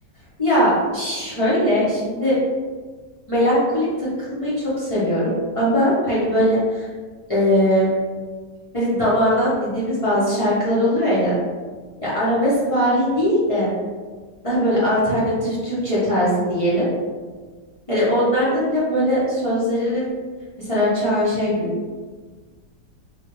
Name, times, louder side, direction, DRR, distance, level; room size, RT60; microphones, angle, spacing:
voice 1, 0.4-2.4 3.3-6.9 7.3-7.9 8.7-11.3 12.0-13.7 14.4-16.9 17.9-20.1 20.6-21.7, equal, 40° left, -9 dB, 0.4 m, -20 dB
3.3 x 2.1 x 3.0 m, 1.4 s
omnidirectional pair, 1.8 m